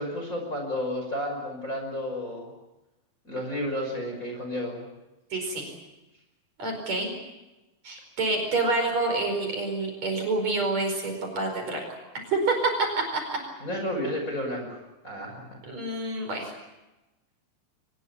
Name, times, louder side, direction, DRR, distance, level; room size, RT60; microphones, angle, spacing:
voice 1, 0.0-2.5 3.2-4.9 13.6-14.8 15.0-15.6, left 1 dB, 20° left, 2 dB, 5.9 m, -32 dB
voice 2, 5.3-5.7 6.6-7.1 7.8-11.8 12.3-13.4 15.6-16.5, right 3 dB, 50° right, 3 dB, 6.0 m, -27 dB
24.0 x 20.5 x 8.7 m, 1.0 s
omnidirectional pair, 4.1 m